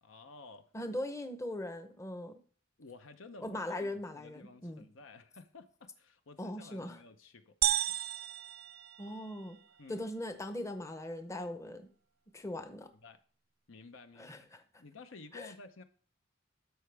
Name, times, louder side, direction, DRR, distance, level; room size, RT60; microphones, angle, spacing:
voice 1, 0.0-0.7 2.8-7.9 9.8-10.0 13.0-13.2 13.7-14.5 14.8-15.8, left 3 dB, 80° left, 9 dB, 0.8 m, -53 dB
voice 2, 0.7-2.4 3.4-4.9 6.4-7.0 9.0-9.6 9.9-11.9 12.3-12.9 14.2-14.6 15.3-15.5, left 1 dB, 15° left, 8 dB, 0.7 m, -40 dB
sound 1, 7.6-9.6, right 13 dB, 50° right, 0.3 m, -33 dB
12.5 x 4.8 x 3.4 m, 0.43 s
head